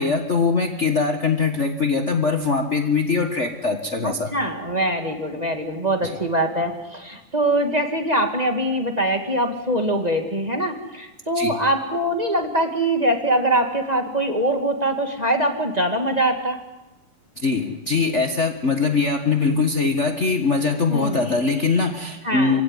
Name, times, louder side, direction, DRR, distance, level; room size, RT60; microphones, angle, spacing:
voice 1, 0.0-4.3 11.3-11.6 17.4-22.6, left 4 dB, 70° left, 5 dB, 0.6 m, -22 dB
voice 2, 4.0-16.6 20.9-21.2 22.2-22.6, right 1 dB, 15° right, 4 dB, 1.7 m, -23 dB
27.0 x 17.0 x 9.8 m, 1.0 s
omnidirectional pair, 3.7 m